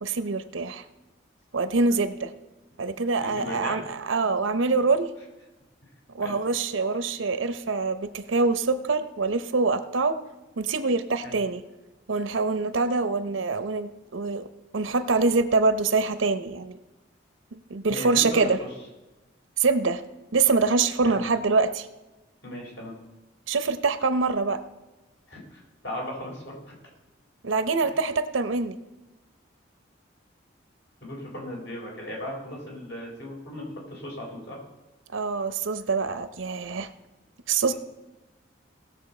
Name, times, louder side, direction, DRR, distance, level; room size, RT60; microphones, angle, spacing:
voice 1, 0.0-0.8 1.5-2.3 2.8-5.1 6.1-10.2 10.6-11.6 12.1-14.5 14.7-16.8 17.5-18.6 19.6-20.0 20.3-21.9 23.5-24.6 27.4-28.8 35.1-36.9 37.5-37.7, right 4 dB, 80° right, 11 dB, 0.7 m, -25 dB
voice 2, 3.2-3.8 6.2-6.4 11.2-11.4 17.9-18.7 21.0-21.2 22.4-23.0 25.3-26.7 31.0-34.6, left 1 dB, 70° left, -2 dB, 3.9 m, -37 dB
18.0 x 6.7 x 4.3 m, 1.1 s
head